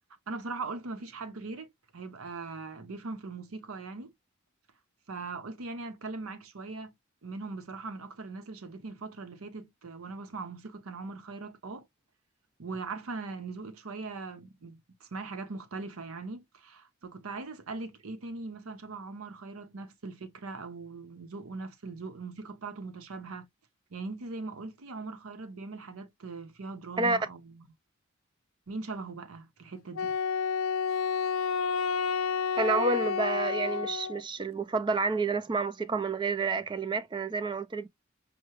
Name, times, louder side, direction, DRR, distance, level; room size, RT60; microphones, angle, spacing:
voice 1, 0.3-1.7 1.9-4.1 5.1-6.9 7.2-11.9 12.6-23.5 23.9-27.7 28.7-30.2, right 3 dB, 85° right, 0.8 m, -40 dB
Wind instrument woodwind instrument, 30.0-34.2, left 6 dB, 70° left, 0.4 m, -30 dB
voice 2, 32.6-37.9, right 3 dB, 20° right, 0.3 m, -29 dB
5.6 x 2.2 x 2.9 m
head